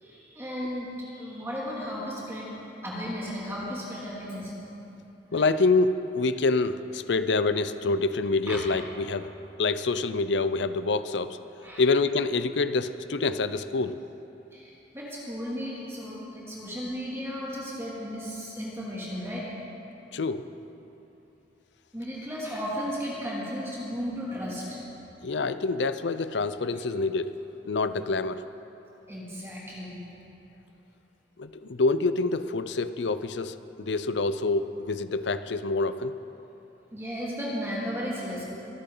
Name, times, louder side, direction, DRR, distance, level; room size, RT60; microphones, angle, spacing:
voice 1, 0.0-2.5 2.8-4.5 5.3-5.4 8.5-8.6 11.6-11.9 14.5-19.5 21.9-24.8 26.7-26.8 29.1-30.0 36.9-38.4, equal, 15° right, -6 dB, 2.6 m, -35 dB
voice 2, 5.3-9.3 9.6-11.4 11.8-14.0 20.1-20.5 25.2-28.4 31.4-36.1, left 3 dB, 80° left, 12 dB, 0.6 m, -26 dB
24.5 x 11.0 x 3.9 m, 3.0 s
head